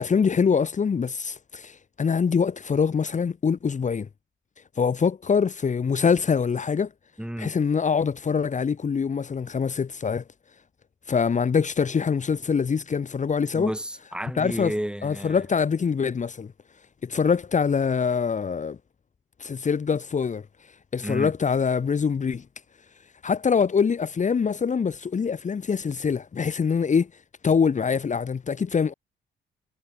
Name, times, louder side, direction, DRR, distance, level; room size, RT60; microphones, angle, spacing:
voice 1, 0.0-4.1 4.8-6.9 7.4-10.2 11.1-13.7 14.4-14.7 15.0-16.5 17.0-18.8 19.4-20.5 20.9-22.4 23.2-27.1 27.4-28.9, left 6 dB, 40° left, 2.0 m, -24 dB
voice 2, 7.2-7.5 13.5-15.4 21.0-21.3, right 1 dB, 5° right, 4.9 m, -31 dB
cardioid pair, 90°, 20 cm